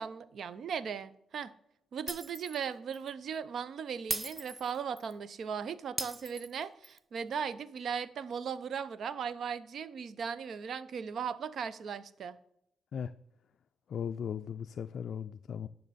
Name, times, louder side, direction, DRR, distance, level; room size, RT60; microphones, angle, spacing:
voice 1, 0.0-1.5 1.9-12.4, right 7 dB, 65° right, 0.5 m, -38 dB
Shatter, 2.1-2.6 2.9-3.1 4.1-5.1 6.0-7.0, right 1 dB, 20° right, 0.6 m, -38 dB
voice 2, 13.9-15.7, left 7 dB, 65° left, 0.3 m, -37 dB
10.5 x 5.9 x 4.1 m
cardioid pair, 80°, 0 cm